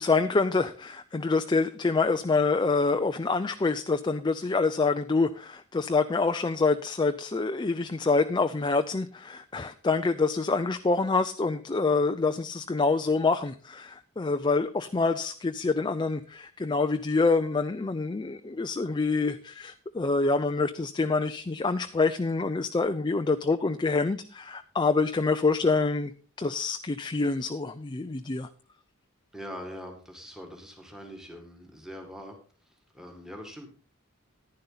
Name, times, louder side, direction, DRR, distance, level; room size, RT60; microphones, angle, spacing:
voice 1, 0.0-26.1 26.4-28.5, left 3 dB, 20° left, 9 dB, 0.4 m, -26 dB
voice 2, 29.3-32.4 32.7-33.7, equal, ahead, 3 dB, 1.9 m, -43 dB
11.0 x 10.5 x 4.0 m, 0.39 s
head